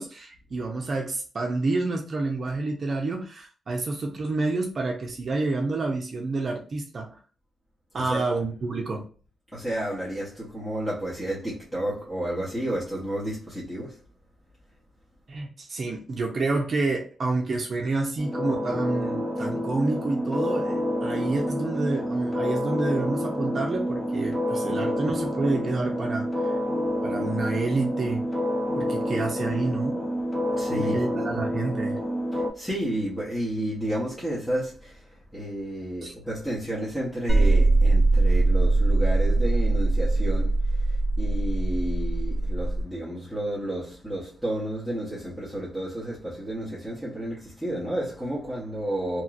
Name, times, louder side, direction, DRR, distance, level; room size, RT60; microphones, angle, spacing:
voice 1, 0.0-7.2 7.9-9.0 15.3-26.5 27.0-28.3 28.8-30.0 30.8-32.0 36.0-36.1, right 3 dB, 45° right, 0.6 m, -29 dB
voice 2, 9.5-14.0 30.6-31.0 31.3-31.4 32.3-49.2, right 1 dB, 10° left, 1.0 m, -31 dB
sound 1, 18.2-32.5, equal, 30° left, 0.7 m, -28 dB
sound 2, 37.3-42.8, right 2 dB, 25° right, 1.2 m, -21 dB
2.9 x 2.9 x 2.4 m
cardioid pair, 115°, 0 cm